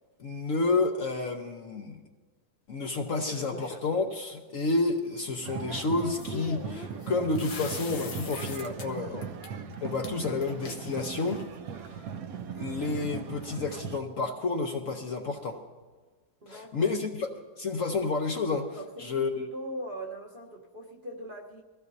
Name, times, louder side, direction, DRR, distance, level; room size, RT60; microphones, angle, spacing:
voice 1, 0.2-2.0 2.7-9.3 9.8-11.4 11.9-12.0 12.6-15.6 16.5-17.3 17.6-18.7 19.0-19.5, left 3 dB, 55° left, 3 dB, 1.1 m, -30 dB
sound 1, 3.3-4.0 6.0-8.9 9.2-9.5 10.0-10.1 10.4-11.6, left 4 dB, 80° left, 1.7 m, -42 dB
sound 2, 5.4-14.0, right 6 dB, 60° right, 1.1 m, -39 dB
voice 2, 16.4-16.9 18.7-21.6, right 1 dB, 35° right, -1 dB, 1.1 m, -41 dB
22.0 x 15.5 x 2.7 m, 1.4 s
omnidirectional pair, 2.0 m